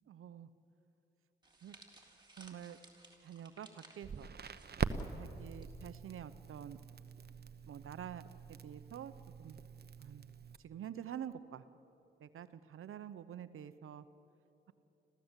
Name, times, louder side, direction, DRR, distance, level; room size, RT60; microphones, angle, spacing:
voice 1, 0.1-0.5 1.6-1.7 2.4-2.8 3.2-4.3 5.2-6.8 7.7-8.2 8.5-9.1 9.4-9.6 10.0-10.3 10.6-11.6 12.2-14.0, right 9 dB, 80° right, 13 dB, 0.8 m, -47 dB
sound 1, 1.4-5.7 6.0-6.2 7.1-7.4, right 2 dB, 20° right, 3.6 m, -61 dB
Crackle, 4.0-10.6, right 5 dB, 50° right, 1.0 m, -43 dB
26.5 x 15.5 x 8.2 m, 2.9 s
cardioid pair, 60°, 21 cm